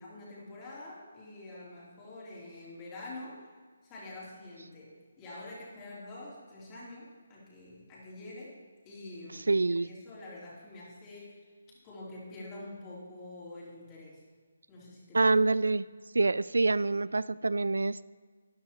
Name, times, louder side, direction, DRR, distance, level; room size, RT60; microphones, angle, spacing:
voice 1, 0.0-3.4 3.8-8.6 8.8-11.4 11.8-14.2 14.7-15.3, left 2 dB, 20° left, -7 dB, 3.2 m, -46 dB
voice 2, 9.5-9.9 15.1-15.9 16.1-18.0, right 3 dB, 80° right, 18 dB, 0.3 m, -26 dB
13.0 x 10.5 x 2.9 m, 1.6 s
figure-of-eight pair, 155°, 0 cm